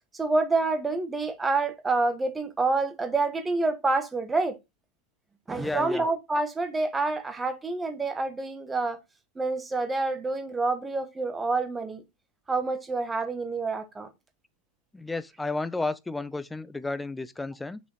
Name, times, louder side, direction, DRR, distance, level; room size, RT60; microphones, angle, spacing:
voice 1, 0.1-4.6 5.5-9.0 9.3-12.0 12.5-14.1, right 3 dB, 10° right, 1.1 m, -27 dB
voice 2, 5.6-6.1 14.9-17.8, left 3 dB, 10° left, 0.5 m, -32 dB
6.3 x 5.3 x 4.0 m
figure-of-eight pair, 90°, 0 cm